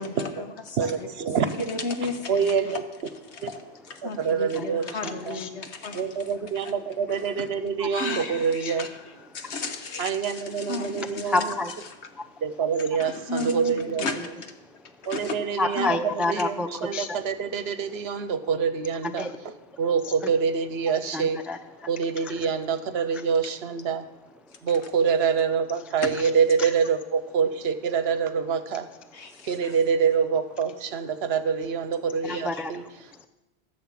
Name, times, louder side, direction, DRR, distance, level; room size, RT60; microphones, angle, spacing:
voice 1, 0.0-1.1 1.4-2.8 3.3-6.1 6.4-6.7 7.1-7.4 7.9-11.5 12.9-14.3 15.1-15.4 15.7-16.2 29.1-29.8 32.2-32.6, left 3 dB, 75° left, 7 dB, 1.4 m, -34 dB
voice 2, 0.8-1.7 2.3-2.8 3.4-3.5 4.0-5.4 5.9-8.9 10.0-11.5 12.4-14.0 15.1-16.0 16.3-19.3 19.8-21.4 21.9-24.0 24.6-28.9 29.4-32.8, right 6 dB, 70° right, 11 dB, 1.0 m, -26 dB
voice 3, 4.5-5.5 7.8-7.9 8.6-8.7 9.3-9.5 11.2-11.7 12.1-12.3 14.2-14.3 14.6-15.1 15.6-17.2 19.0-19.3 19.7-19.8 20.2-20.3 21.1-21.9 22.2-22.4 23.1-23.2 24.4-24.6 26.6-26.7 29.3-29.5 32.2-33.3, left 2 dB, ahead, 9 dB, 0.3 m, -31 dB
13.0 x 6.8 x 7.4 m, 1.0 s
omnidirectional pair, 1.1 m